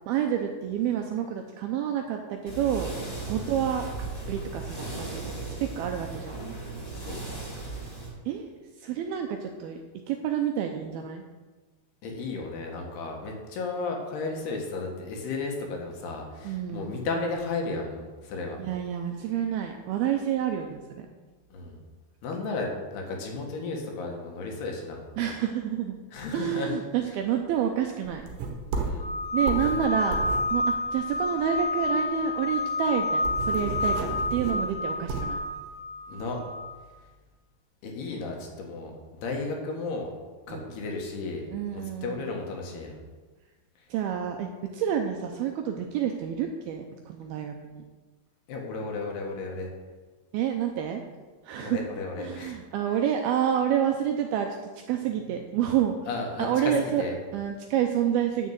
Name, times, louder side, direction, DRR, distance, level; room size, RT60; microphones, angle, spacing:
voice 1, 0.1-2.9 3.3-6.4 8.3-8.5 8.8-11.2 16.4-16.9 18.6-21.1 25.2-26.0 26.3-28.2 29.3-30.2 30.5-35.4 40.5-40.8 41.5-42.3 43.9-47.8 50.3-51.0 51.4-51.8 52.2-54.5 54.9-56.0 56.4-58.5, right 9 dB, 85° right, 4 dB, 2.2 m, -29 dB
sound 1, 2.5-8.1, right 3 dB, 15° left, 2.6 m, -36 dB
voice 2, 6.9-7.3 12.0-18.6 21.5-21.8 22.2-25.0 26.1-26.7 28.7-29.1 36.1-36.4 37.8-40.1 40.5-41.5 41.7-43.0 48.5-49.7 51.6-52.6 56.1-57.1, left 3 dB, 70° left, 1 dB, 3.5 m, -34 dB
sound 2, 28.0-31.8 32.1-32.2 32.5-32.6 32.9-35.4, right 3 dB, 60° right, 2.4 m, -33 dB
sound 3, 29.0-36.8, left 2 dB, 45° left, 2.9 m, -29 dB
9.8 x 6.5 x 8.0 m, 1.3 s
omnidirectional pair, 5.1 m